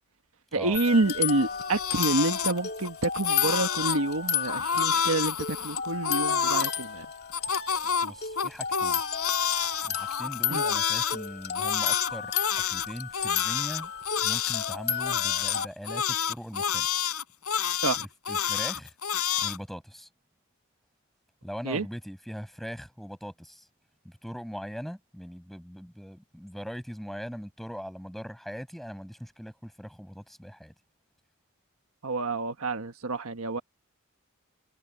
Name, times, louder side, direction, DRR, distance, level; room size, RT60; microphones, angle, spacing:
voice 1, 0.5-7.1 10.5-10.6 17.8-18.0 21.6-21.8 32.0-33.6, right 2 dB, 75° right, 1.4 m, -28 dB
sound 1, 0.7-15.7, left 8 dB, 45° left, 2.9 m, -33 dB
Crying sobbing, 1.4-2.9 3.1-4.0 4.5-6.7 7.3-11.2 11.6-19.6, left 8 dB, 85° left, 5.1 m, -28 dB
voice 2, 8.0-9.0 9.8-13.9 14.2-16.9 18.0-18.9 19.4-20.1 21.4-23.7 24.0-30.7, equal, ahead, 6.4 m, -40 dB
head